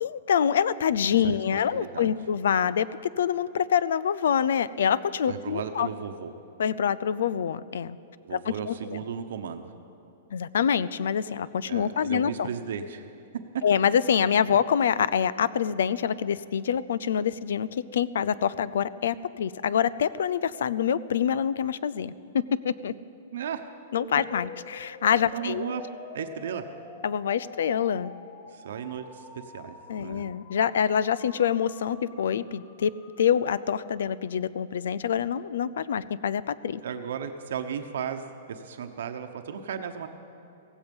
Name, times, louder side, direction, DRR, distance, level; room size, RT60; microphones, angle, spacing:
voice 1, 0.0-2.9 3.2-5.9 6.6-8.0 8.3-9.0 10.3-12.5 13.6-22.9 23.9-25.7 27.0-28.1 29.9-32.9 33.2-36.8, left 8 dB, 75° left, 19 dB, 0.5 m, -26 dB
voice 2, 1.2-2.1 5.3-6.3 8.2-9.7 11.6-13.1 14.5-14.6 23.3-23.6 25.3-25.8 26.1-26.6 28.5-30.3 36.8-40.1, right 7 dB, 70° right, 6 dB, 1.0 m, -35 dB
sound 1, 24.0-34.0, left 2 dB, 25° left, 1.8 m, -47 dB
16.5 x 16.0 x 5.4 m, 3.0 s
hypercardioid pair, 170°, 0 cm